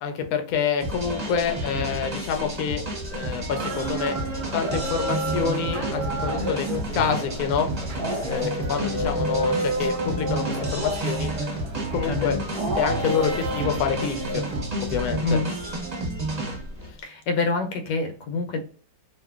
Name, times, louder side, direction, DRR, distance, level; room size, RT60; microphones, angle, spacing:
voice 1, 0.0-2.8 3.1-4.1 4.5-6.7 6.9-7.7 8.2-11.3 11.9-12.3 12.8-14.4 14.8-15.4, left 6 dB, 70° left, 5 dB, 0.9 m, -27 dB
sound 1, 0.8-16.9, right 1 dB, 35° right, 0.7 m, -31 dB
sound 2, 3.5-14.6, equal, 75° right, 0.4 m, -30 dB
voice 2, 12.0-12.4 15.2-15.5 17.0-18.6, left 4 dB, 90° left, 6 dB, 1.3 m, -26 dB
2.9 x 2.5 x 2.3 m, 0.41 s
omnidirectional pair, 1.9 m